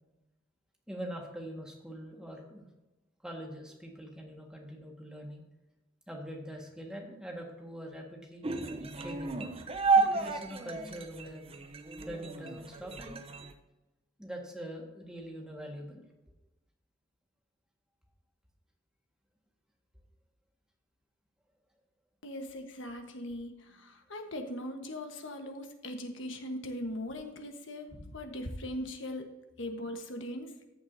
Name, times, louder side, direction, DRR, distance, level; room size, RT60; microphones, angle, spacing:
voice 1, 0.9-2.6 3.2-5.4 6.1-8.4 9.0-9.6 9.9-11.5 12.0-13.2 14.2-16.0, equal, 5° right, 0 dB, 1.7 m, -43 dB
sound 1, 8.4-13.5, right 4 dB, 30° right, 0.7 m, -31 dB
voice 2, 22.2-29.3 29.6-30.5, left 1 dB, 65° left, 4 dB, 1.3 m, -40 dB
14.0 x 7.1 x 2.7 m, 1.0 s
head